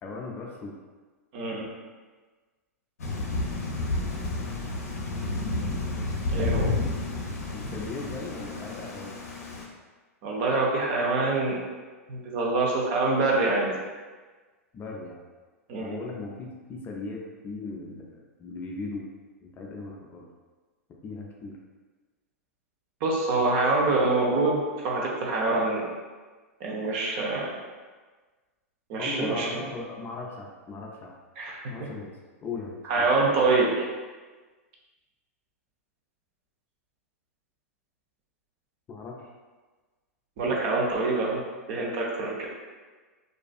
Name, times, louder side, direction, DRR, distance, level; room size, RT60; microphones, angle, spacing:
voice 1, 0.0-0.7 7.5-9.2 14.7-15.2 15.8-18.0 18.4-19.1 19.4-20.3 21.0-21.6 29.0-31.2 31.7-32.1 32.4-33.1 38.9-39.3, left 3 dB, 25° left, -1 dB, 0.4 m, -37 dB
voice 2, 1.3-1.7 6.3-6.7 10.2-11.6 12.1-13.7 15.7-16.0 23.0-25.9 26.6-27.5 28.9-29.5 31.4-31.6 32.8-33.9 40.4-41.4 41.7-42.5, right 3 dB, 45° right, -2 dB, 0.6 m, -25 dB
Thunder / Rain, 3.0-9.6, left 2 dB, 80° left, 0.5 m, -31 dB
2.4 x 2.4 x 2.3 m, 1.4 s
hypercardioid pair, 105°, 8 cm